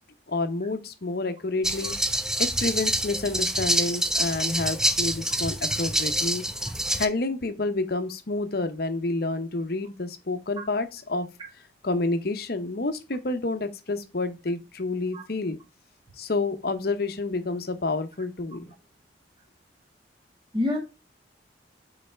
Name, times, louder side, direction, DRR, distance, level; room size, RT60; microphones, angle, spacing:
voice 1, 0.3-6.4 7.0-11.3 11.8-15.6 16.2-18.7, left 2 dB, 55° left, 0.8 m, -29 dB
sound 1, 1.6-7.1, right 1 dB, 5° right, 0.4 m, -26 dB
voice 2, 1.8-1.9 10.6-10.7 11.4-11.5 15.1-15.2 20.5-20.8, left 2 dB, 25° right, 1.7 m, -27 dB
5.5 x 4.0 x 4.5 m
head